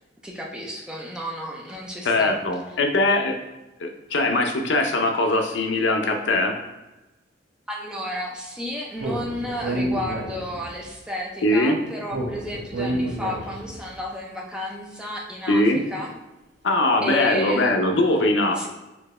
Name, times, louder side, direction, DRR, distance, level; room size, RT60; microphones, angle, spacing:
voice 1, 0.2-2.4 7.7-16.1 17.0-17.7 18.6-18.7, left 1 dB, 5° right, -2 dB, 0.6 m, -32 dB
voice 2, 2.0-3.3 3.8-6.6 11.4-11.8 15.5-15.8 16.6-18.6, left 2 dB, 75° left, 3 dB, 0.6 m, -21 dB
Speech, 9.0-10.8 12.1-13.8, right 1 dB, 65° right, 1.0 m, -29 dB
4.4 x 2.7 x 3.2 m, 1.1 s
head